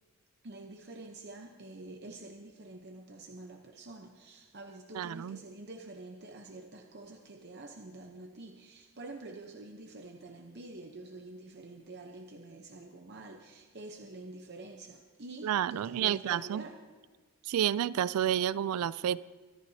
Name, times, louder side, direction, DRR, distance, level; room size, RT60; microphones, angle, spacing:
voice 1, 0.4-16.8, right 2 dB, 50° right, 3 dB, 0.8 m, -47 dB
voice 2, 4.9-5.4 15.4-16.6 17.4-19.3, right 10 dB, 80° right, 19 dB, 0.3 m, -30 dB
24.0 x 13.5 x 2.8 m, 1.4 s
head